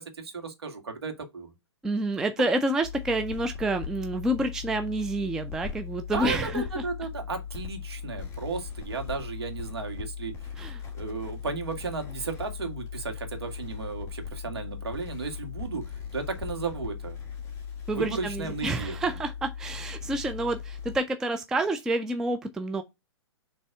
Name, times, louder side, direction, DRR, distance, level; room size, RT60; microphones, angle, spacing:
voice 1, 0.0-1.5 6.1-10.3 10.9-17.2 17.9-19.1, right 4 dB, 60° right, 2.0 m, -34 dB
voice 2, 1.8-6.6 10.6-10.8 17.9-22.8, right 1 dB, 5° right, 0.3 m, -28 dB
sound 1, 2.8-21.0, left 7 dB, 20° left, 2.4 m, -38 dB
6.6 x 3.3 x 4.6 m
figure-of-eight pair, 115°, 15 cm